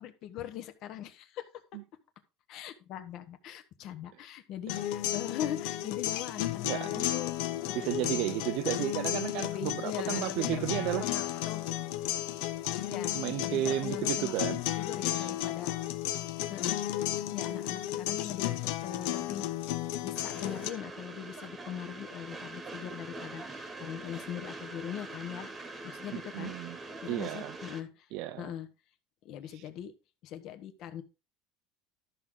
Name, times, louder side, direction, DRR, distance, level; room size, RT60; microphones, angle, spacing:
voice 1, 0.0-1.5 2.5-7.3 7.6-7.8 9.4-10.6 11.0-11.7 12.9-15.7 16.5-19.5 20.0-26.5 27.0-28.1 28.4-28.7 29.2-29.9 30.2-31.0, left 10 dB, 45° left, 1.3 m, -41 dB
sound 1, 4.7-20.7, left 14 dB, 65° left, 0.9 m, -33 dB
voice 2, 6.6-7.0 7.7-11.1 13.1-14.6 15.1-15.3 26.1-26.8 27.1-27.6 28.1-28.5 29.5-29.6, right 14 dB, 55° right, 0.6 m, -33 dB
Train, 20.2-27.8, right 2 dB, 15° right, 1.4 m, -44 dB
13.0 x 6.2 x 3.9 m
cardioid pair, 165°, 0 cm